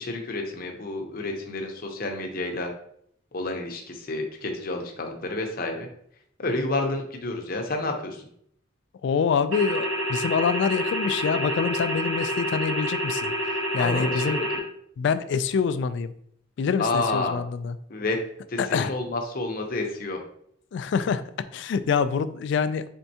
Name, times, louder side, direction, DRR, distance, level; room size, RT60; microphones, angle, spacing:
voice 1, 0.0-2.7 3.3-5.9 6.4-8.3 13.8-14.4 16.8-17.4 17.9-18.2 18.5-20.2, left 2 dB, 50° left, 3 dB, 0.7 m, -29 dB
voice 2, 9.0-14.4 15.0-16.1 16.6-17.8 18.6-18.9 20.7-21.2 21.5-22.9, left 6 dB, 65° left, 13 dB, 0.3 m, -26 dB
sound 1, 9.5-14.6, equal, 85° right, 1.2 m, -28 dB
4.4 x 3.5 x 2.7 m, 0.68 s
head